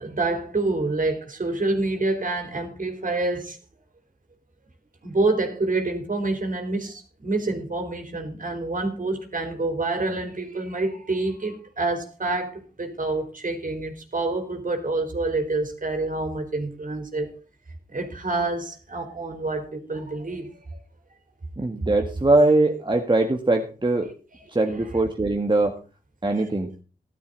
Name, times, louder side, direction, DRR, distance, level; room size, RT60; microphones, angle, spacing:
voice 1, 0.0-3.6 5.0-17.3 17.9-20.8, right 2 dB, 55° right, 3.7 m, -27 dB
voice 2, 21.6-24.1 24.5-25.8 26.2-26.7, right 2 dB, 30° right, 1.8 m, -21 dB
14.0 x 12.0 x 4.0 m
cardioid pair, 55°, 17 cm